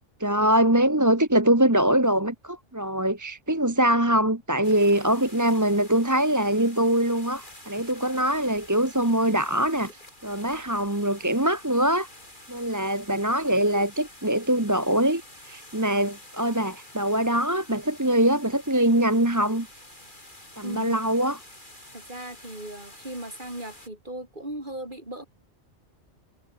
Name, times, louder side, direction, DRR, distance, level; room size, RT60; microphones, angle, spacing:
voice 1, 0.2-9.9 10.2-12.1 12.5-19.7 20.6-21.4, right 1 dB, 15° right, 1.7 m, -23 dB
sound 1, 4.6-23.9, left 1 dB, 45° left, 8.0 m, -48 dB
voice 2, 20.6-21.0 21.9-25.2, right 1 dB, 45° right, 6.4 m, -37 dB
omnidirectional pair, 1.2 m